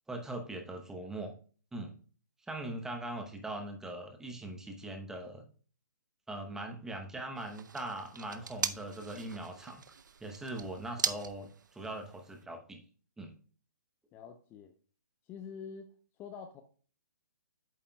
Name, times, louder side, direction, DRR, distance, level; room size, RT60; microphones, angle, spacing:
voice 1, 0.1-1.3 1.7-1.9 2.5-5.4 6.3-9.8 10.2-12.8 13.2-13.3, right 1 dB, 5° right, 4 dB, 0.8 m, -41 dB
sound 1, 7.4-12.4, right 6 dB, 85° right, 0.6 m, -40 dB
voice 2, 14.1-14.7 15.2-15.9 16.2-16.6, left 6 dB, 20° left, 7 dB, 0.6 m, -46 dB
8.5 x 7.2 x 2.2 m, 0.41 s
hypercardioid pair, 150°, 10 cm